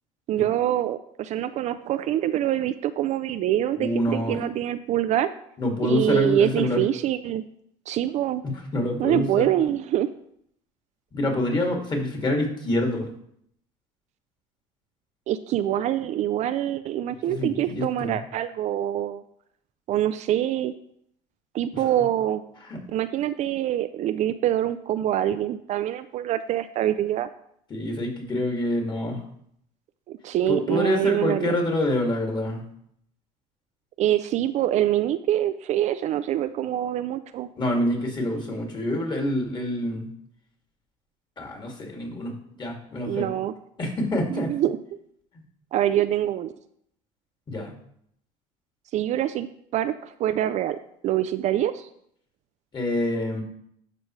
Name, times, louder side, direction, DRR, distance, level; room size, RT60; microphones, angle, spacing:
voice 1, 0.3-5.3 5.8-7.4 7.9-8.4 9.0-10.1 15.3-19.2 19.9-20.7 21.5-22.4 22.9-27.3 30.1-31.6 34.0-37.5 43.1-43.5 44.3-44.8 45.7-46.5 48.9-49.5 49.7-51.9, right 12 dB, 50° right, 12 dB, 0.4 m, -25 dB
voice 2, 3.8-4.4 5.6-6.8 8.4-9.5 11.1-13.1 17.3-18.1 22.6-22.8 27.7-29.2 30.5-32.6 37.6-40.1 41.4-43.3 43.8-44.5 47.5-47.7 52.7-53.4, left 1 dB, 30° left, 1 dB, 2.4 m, -26 dB
12.0 x 5.1 x 3.2 m, 0.70 s
supercardioid pair, 105°, 16 cm